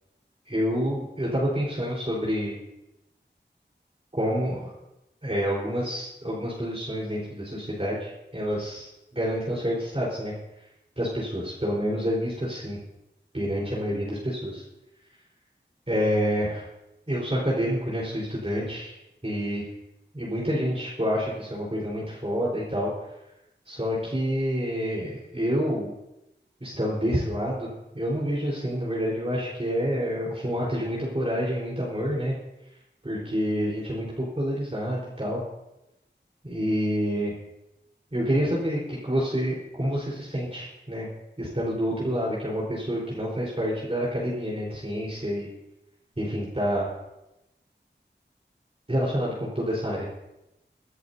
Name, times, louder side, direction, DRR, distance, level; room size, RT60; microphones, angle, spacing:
voice 1, 0.5-2.6 4.2-4.7 5.2-10.3 11.0-12.8 13.3-14.6 15.9-16.6 17.1-19.0 19.2-19.7 20.1-22.9 23.7-25.9 26.6-27.7 27.9-32.4 33.0-35.4 36.4-37.3 38.1-41.1 41.4-45.5 46.2-46.9 48.9-50.1, equal, 30° right, -6 dB, 4.3 m, -28 dB
25.0 x 10.5 x 2.8 m, 0.91 s
wide cardioid pair, 60°, 19 cm